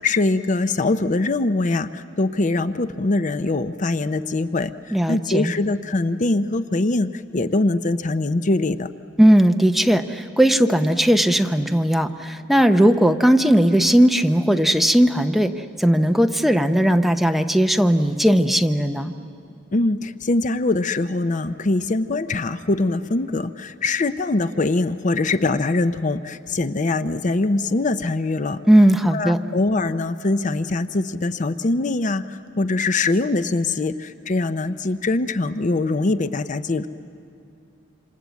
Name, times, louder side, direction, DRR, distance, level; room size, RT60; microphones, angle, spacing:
voice 1, 0.0-8.9 19.7-28.6 29.1-36.9, left 2 dB, 40° left, 12 dB, 0.6 m, -23 dB
voice 2, 4.9-5.5 9.2-15.5 15.8-19.1 28.7-29.4, equal, ahead, 6 dB, 0.8 m, -17 dB
27.0 x 26.5 x 8.3 m, 2.6 s
head